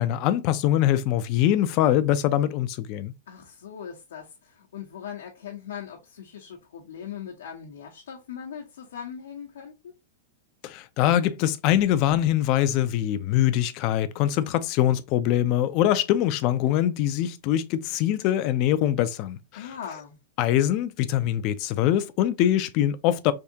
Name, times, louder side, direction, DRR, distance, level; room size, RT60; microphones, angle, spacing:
voice 1, 0.0-3.1 10.6-19.7 20.4-23.3, left 12 dB, 35° left, 0.3 m, -23 dB
voice 2, 3.3-9.9 19.5-20.2, left 8 dB, 80° left, 0.8 m, -40 dB
3.4 x 2.7 x 2.6 m
supercardioid pair, 160°, 0 cm